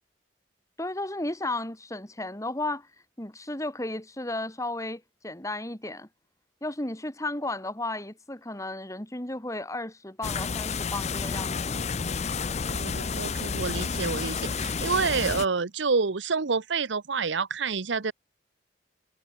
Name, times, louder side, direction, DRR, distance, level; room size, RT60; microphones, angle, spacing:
voice 1, 0.8-2.9 3.2-6.1 6.6-11.8, left 2 dB, 15° left, 2.6 m, -34 dB
sound 1, 10.2-15.5, left 5 dB, 35° left, 0.6 m, -30 dB
voice 2, 12.7-18.1, right 4 dB, 75° right, 0.9 m, -28 dB
head